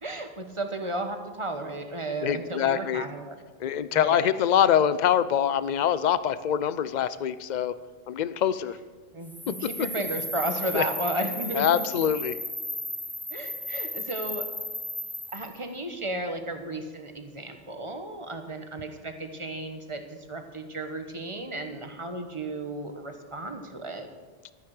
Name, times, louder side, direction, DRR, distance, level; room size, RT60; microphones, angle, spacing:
voice 1, 0.0-3.4 3.9-4.3 9.1-11.8 13.3-14.4 15.3-24.1, right 1 dB, 30° right, 6 dB, 1.2 m, -34 dB
voice 2, 2.2-3.1 3.6-7.8 8.1-8.8 9.5-9.6 10.7-10.8 11.5-12.4, left 9 dB, 55° left, 15 dB, 0.6 m, -24 dB
sound 1, 9.2-15.6, equal, 5° left, 0.4 m, -35 dB
13.0 x 9.4 x 6.5 m, 1.4 s
omnidirectional pair, 1.0 m